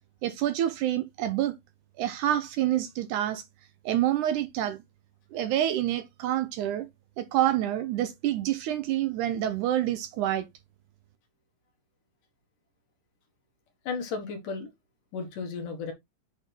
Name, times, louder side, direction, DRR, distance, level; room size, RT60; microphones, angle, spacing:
voice 1, 0.2-1.5 2.0-3.4 3.9-4.8 5.3-6.9 7.2-10.5, right 12 dB, 75° right, 2.0 m, -27 dB
voice 2, 13.9-14.7 15.1-15.9, left 5 dB, 70° left, 3.1 m, -34 dB
8.1 x 3.6 x 4.4 m
omnidirectional pair, 4.0 m